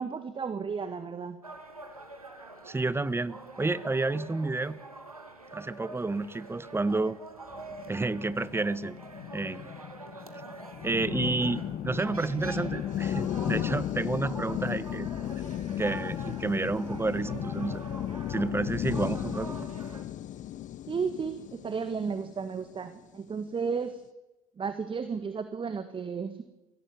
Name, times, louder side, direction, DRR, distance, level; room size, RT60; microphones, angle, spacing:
voice 1, 0.0-1.4 20.9-24.0 24.6-26.4, right 5 dB, 30° right, 11 dB, 1.8 m, -33 dB
sound 1, 1.4-20.0, right 2 dB, 90° right, 2.4 m, -46 dB
voice 2, 2.6-4.8 5.5-7.2 7.9-8.9 9.3-9.7 10.8-15.1 15.8-17.8 18.3-19.7, right 3 dB, 15° right, 18 dB, 1.2 m, -30 dB
sound 2, 7.5-23.0, left 11 dB, 45° left, 0.9 m, -35 dB
23.0 x 17.0 x 9.6 m, 1.0 s
figure-of-eight pair, 60°, 18 cm